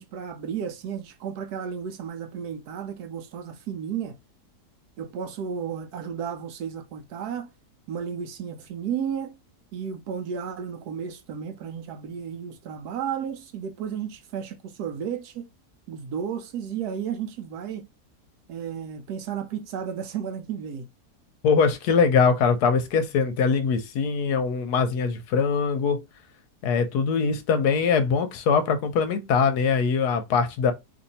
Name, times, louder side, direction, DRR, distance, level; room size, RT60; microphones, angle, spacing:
voice 1, 0.0-4.2 5.0-7.5 7.9-9.4 9.7-15.4 15.9-17.9 18.5-20.9, right 8 dB, 70° right, 1.1 m, -33 dB
voice 2, 21.4-26.0 26.6-30.7, left 5 dB, 75° left, 1.1 m, -22 dB
2.9 x 2.6 x 4.0 m
omnidirectional pair, 1.8 m